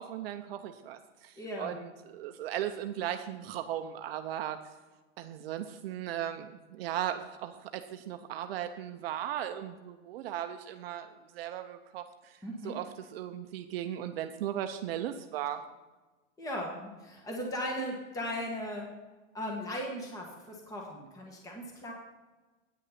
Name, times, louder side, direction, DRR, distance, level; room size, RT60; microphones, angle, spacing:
voice 1, 0.0-4.6 5.2-15.6, right 11 dB, 50° right, 8 dB, 0.6 m, -37 dB
voice 2, 1.4-1.8 12.4-12.7 16.4-18.9 19.3-21.9, equal, 10° left, 0 dB, 1.3 m, -37 dB
9.4 x 6.4 x 5.7 m, 1.2 s
supercardioid pair, 150°, 38 cm